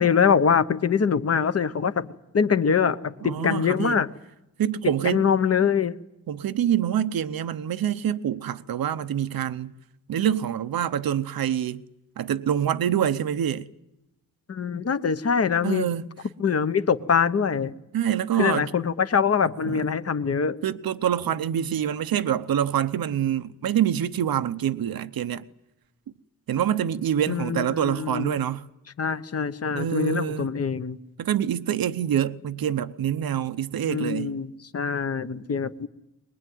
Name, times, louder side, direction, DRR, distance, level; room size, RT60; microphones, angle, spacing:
voice 1, 0.0-4.1 4.8-6.0 14.5-15.9 16.4-17.7 18.4-20.6 27.3-28.4 29.0-31.0 33.9-35.9, left 6 dB, 45° left, 1.1 m, -24 dB
voice 2, 3.2-4.0 4.6-5.2 6.3-9.7 10.1-11.8 12.2-13.7 15.6-16.0 17.9-18.6 19.7-19.8 20.6-25.4 26.5-28.6 29.7-30.5 31.2-34.3, right 10 dB, 90° right, 0.9 m, -26 dB
23.5 x 21.0 x 9.3 m
wide cardioid pair, 140°, 35 cm